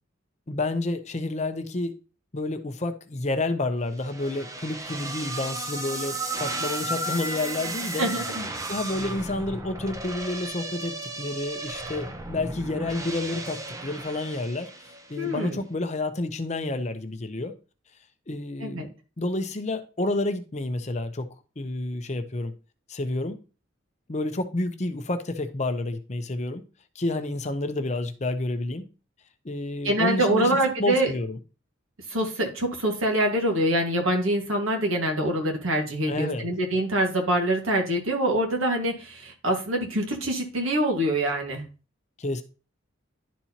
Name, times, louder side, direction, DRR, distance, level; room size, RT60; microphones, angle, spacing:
voice 1, 0.5-1.9 2.3-8.1 8.7-14.7 15.1-17.5 18.3-18.9 19.2-21.3 21.6-22.5 22.9-23.4 24.1-26.6 27.0-28.9 29.4-31.4 36.1-36.5 42.2-42.4, left 2 dB, 35° left, 0.6 m, -29 dB
sound 1, 4.0-15.3, right 2 dB, 15° right, 0.6 m, -34 dB
voice 2, 8.0-8.5 15.2-15.6 18.6-18.9 29.8-31.1 32.1-41.6, right 1 dB, 85° right, 1.7 m, -25 dB
11.0 x 4.3 x 2.8 m
head